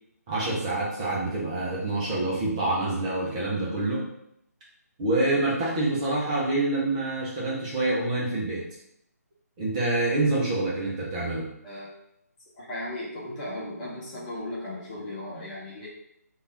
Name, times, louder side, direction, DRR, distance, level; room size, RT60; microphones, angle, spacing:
voice 1, 0.3-4.0 5.0-8.6 9.6-11.4, right 2 dB, 25° right, -5 dB, 1.2 m, -26 dB
voice 2, 12.5-15.9, left 1 dB, 20° left, -6 dB, 1.2 m, -36 dB
3.6 x 2.9 x 4.5 m, 0.75 s
figure-of-eight pair, 150°, 9 cm